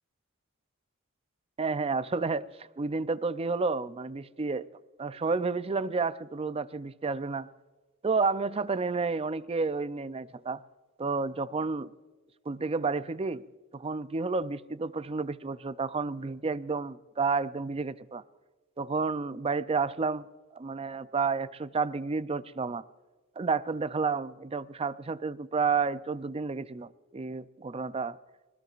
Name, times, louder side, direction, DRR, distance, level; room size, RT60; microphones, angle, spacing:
voice 1, 1.6-2.5 2.8-4.7 5.0-7.5 8.0-10.6 11.0-11.9 12.5-13.5 13.7-18.2 18.8-20.3 20.6-22.8 23.4-28.2, right 4 dB, 25° right, 0.4 m, -30 dB
21.5 x 20.5 x 2.5 m
head